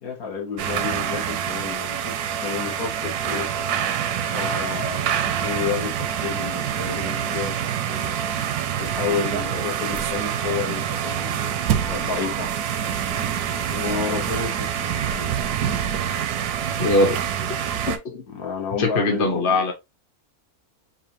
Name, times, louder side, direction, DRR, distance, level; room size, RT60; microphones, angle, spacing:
voice 1, 0.0-3.5 4.3-8.2 8.8-12.5 13.7-15.4 18.3-19.6, left 6 dB, 75° left, 1.6 m, -31 dB
sound 1, 0.6-18.0, right 9 dB, 85° right, 1.1 m, -26 dB
voice 2, 16.8-17.2 17.9-18.2 18.8-19.7, left 2 dB, 40° left, 1.1 m, -21 dB
4.2 x 2.6 x 2.7 m
omnidirectional pair, 1.5 m